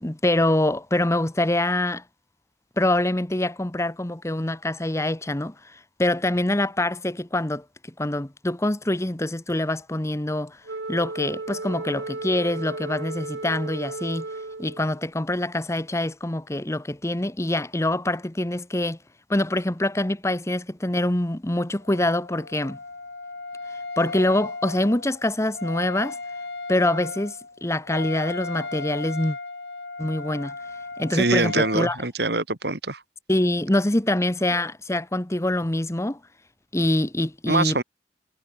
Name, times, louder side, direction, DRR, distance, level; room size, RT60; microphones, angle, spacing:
voice 1, 0.0-2.0 2.8-7.6 8.0-10.6 10.9-14.3 14.6-19.0 19.3-22.8 24.0-26.2 26.7-29.4 30.0-30.5 31.0-32.0 33.3-36.2 36.7-37.8, left 1 dB, 15° left, 1.0 m, -25 dB
Wind instrument woodwind instrument, 10.7-15.0, right 2 dB, 90° right, 1.6 m, -34 dB
Wind instrument woodwind instrument 2, 21.8-31.8, left 3 dB, 75° left, 3.9 m, -36 dB
voice 2, 31.1-33.0 37.5-37.8, right 3 dB, 65° right, 3.1 m, -24 dB
head